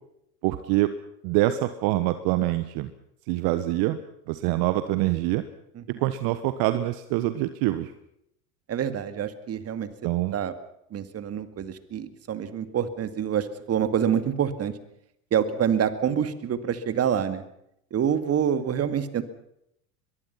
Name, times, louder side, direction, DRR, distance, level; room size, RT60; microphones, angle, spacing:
voice 1, 0.4-0.9 1.2-2.9 3.3-4.0 4.3-5.4 6.0-7.9 10.0-10.4, right 16 dB, 50° right, 11 dB, 1.4 m, -25 dB
voice 2, 8.7-9.9 10.3-10.5 10.9-14.7 15.3-17.4 17.9-19.2, right 8 dB, 30° right, 11 dB, 2.2 m, -26 dB
23.0 x 22.5 x 5.9 m, 0.76 s
hypercardioid pair, 80°, 46 cm